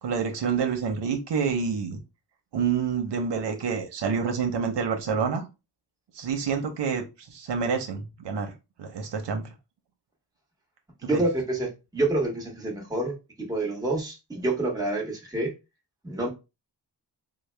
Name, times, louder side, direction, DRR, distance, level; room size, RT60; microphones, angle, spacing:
voice 1, 0.0-2.0 2.5-5.5 6.1-8.5 8.8-9.4 11.1-11.2, right 6 dB, 90° right, 0.8 m, -28 dB
voice 2, 11.0-13.1 13.5-15.5 16.0-16.3, right 2 dB, 10° right, 1.0 m, -27 dB
3.9 x 2.1 x 3.2 m
wide cardioid pair, 155°, 41 cm